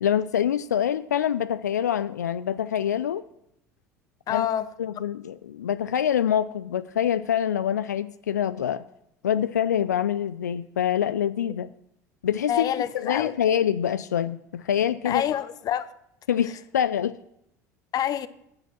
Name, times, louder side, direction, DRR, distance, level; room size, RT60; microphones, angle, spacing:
voice 1, 0.0-3.2 4.3-4.5 4.8-8.8 9.2-11.7 12.2-15.2 16.3-17.2, left 9 dB, 85° left, 0.4 m, -25 dB
voice 2, 4.3-4.7 12.5-13.3 15.0-15.9 17.9-18.3, left 10 dB, 45° left, 0.8 m, -26 dB
8.7 x 7.5 x 7.3 m
hypercardioid pair, 70°, 9 cm